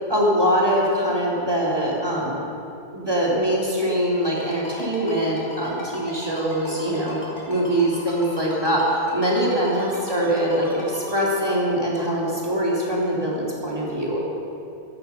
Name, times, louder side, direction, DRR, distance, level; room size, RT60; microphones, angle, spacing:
voice 1, 0.1-2.4 2.9-7.2 7.5-14.2, equal, 20° right, -5 dB, 2.7 m, -23 dB
Ringtone, 4.4-11.1, left 1 dB, 85° left, 3.7 m, -37 dB
15.0 x 9.1 x 5.5 m, 2.6 s
omnidirectional pair, 1.2 m